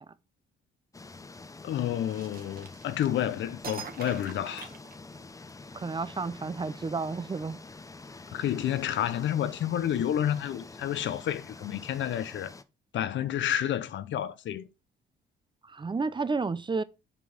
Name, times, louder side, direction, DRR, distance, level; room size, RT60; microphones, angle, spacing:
sound 1, 0.9-12.6, left 3 dB, 15° left, 0.7 m, -47 dB
voice 1, 1.6-4.7 8.3-12.5 12.9-14.7, left 10 dB, 70° left, 0.8 m, -30 dB
sound 2, 2.1-3.2 3.6-5.5, right 6 dB, 50° right, 1.8 m, -43 dB
voice 2, 5.7-7.6 15.6-16.8, right 4 dB, 25° right, 0.6 m, -31 dB
7.2 x 4.6 x 5.1 m
cardioid pair, 90°, 20 cm